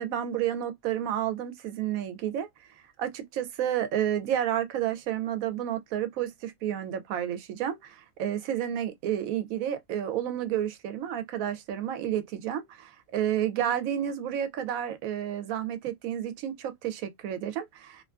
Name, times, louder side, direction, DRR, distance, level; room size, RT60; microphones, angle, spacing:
voice 1, 0.0-2.5 3.0-18.0, right 10 dB, 75° right, 1.0 m, -31 dB
2.6 x 2.4 x 2.2 m
omnidirectional pair, 1.5 m